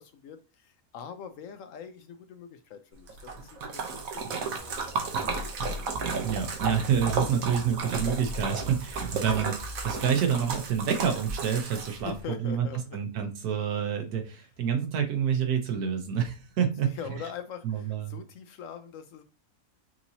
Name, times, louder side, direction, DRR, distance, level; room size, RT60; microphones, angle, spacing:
voice 1, 0.0-4.8 11.9-13.0 16.8-19.2, left 7 dB, 70° left, 0.9 m, -43 dB
Splash splatter, 3.1-12.2, right 4 dB, 65° right, 1.2 m, -33 dB
sound 1, 4.6-10.0, left 2 dB, 45° left, 1.1 m, -41 dB
voice 2, 6.2-17.0 17.6-18.2, right 8 dB, 80° right, 1.4 m, -28 dB
5.8 x 2.8 x 2.7 m
omnidirectional pair, 1.6 m